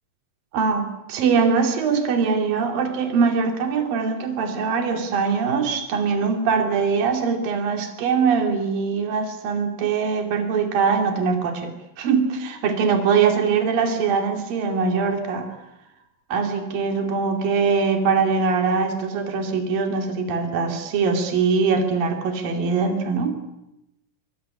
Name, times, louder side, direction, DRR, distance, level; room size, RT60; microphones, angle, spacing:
voice 1, 0.5-15.6 16.3-23.4, right 5 dB, 70° right, 4 dB, 4.4 m, -22 dB
24.0 x 23.5 x 9.9 m, 0.88 s
omnidirectional pair, 4.2 m